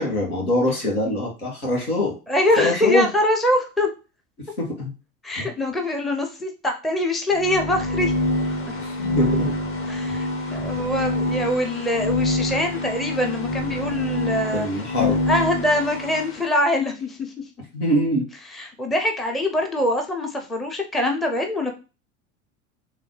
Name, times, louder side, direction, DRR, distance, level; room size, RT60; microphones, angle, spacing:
voice 1, 0.0-2.2 2.6-3.1 4.6-4.9 5.4-5.5 8.8-9.5 14.5-15.2 17.7-18.2, left 1 dB, 80° left, -1 dB, 2.0 m, -23 dB
voice 2, 2.3-3.9 5.2-8.1 9.9-14.7 15.0-17.3 18.5-21.7, left 1 dB, ahead, 3 dB, 0.5 m, -24 dB
sound 1, 7.3-16.4, left 1 dB, 30° left, 1.1 m, -26 dB
4.1 x 3.1 x 3.2 m, 0.32 s
figure-of-eight pair, 80°, 44 cm